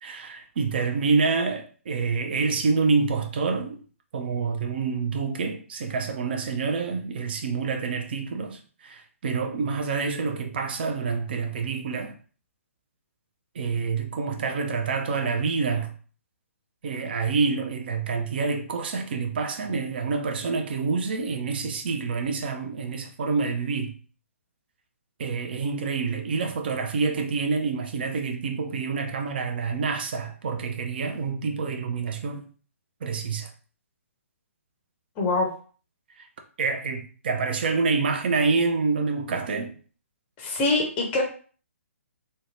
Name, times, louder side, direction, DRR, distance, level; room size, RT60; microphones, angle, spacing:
voice 1, 0.0-3.8 4.1-12.1 13.5-15.9 16.8-24.0 25.2-32.4 33.0-33.5 36.2-36.3 36.6-39.7, right 4 dB, 45° right, 0.4 m, -27 dB
voice 2, 35.2-35.5 40.4-41.2, left 2 dB, 20° left, 0.6 m, -24 dB
2.7 x 2.2 x 2.9 m
figure-of-eight pair, 130°, 8 cm